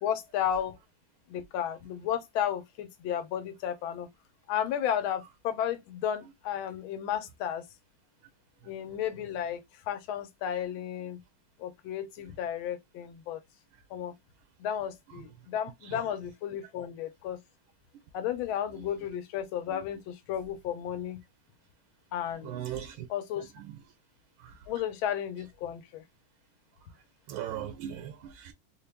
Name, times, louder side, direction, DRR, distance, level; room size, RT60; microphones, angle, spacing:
voice 1, 0.0-0.8 1.3-4.1 4.5-7.6 8.6-11.2 11.6-13.4 13.9-14.1 14.6-17.4 18.1-21.2 22.1-22.5 23.1-23.5 24.7-26.0, left 9 dB, 75° left, 1.5 m, -33 dB
voice 2, 22.4-23.1 24.4-24.7 27.3-28.5, right 10 dB, 80° right, 1.4 m, -38 dB
4.2 x 2.3 x 3.3 m
omnidirectional pair, 2.3 m